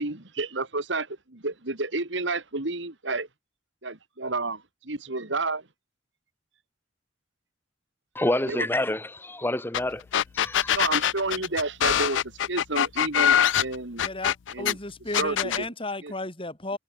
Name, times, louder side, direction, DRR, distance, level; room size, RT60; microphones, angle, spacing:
voice 1, 0.0-3.3 3.8-5.7 8.4-8.7 10.7-14.0 14.5-14.8 15.2-15.7 16.0-16.1, right 3 dB, 65° right, 2.3 m, -30 dB
voice 2, 8.1-10.0 10.3-10.8, left 1 dB, 10° left, 0.9 m, -27 dB
sound 1, 9.7-9.8 10.1-14.7 15.1-15.6, left 10 dB, 70° left, 0.4 m, -23 dB
voice 3, 14.0-16.8, left 2 dB, 25° left, 4.2 m, -34 dB
head